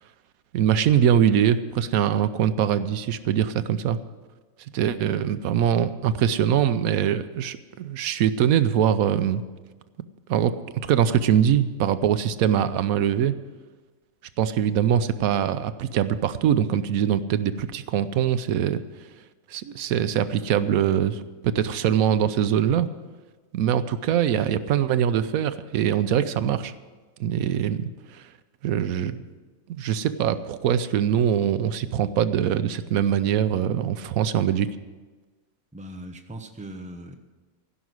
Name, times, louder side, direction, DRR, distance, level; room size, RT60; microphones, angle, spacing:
voice 1, 0.5-4.0 4.7-9.4 10.3-10.5 10.8-13.3 14.4-18.8 19.5-22.9 23.5-26.7 27.2-28.2 28.6-29.3 29.7-34.7, right 9 dB, 85° right, 12 dB, 1.1 m, -23 dB
voice 2, 35.7-37.2, right 1 dB, 5° right, 4 dB, 0.8 m, -39 dB
15.0 x 6.2 x 9.5 m, 1.3 s
omnidirectional pair, 1.5 m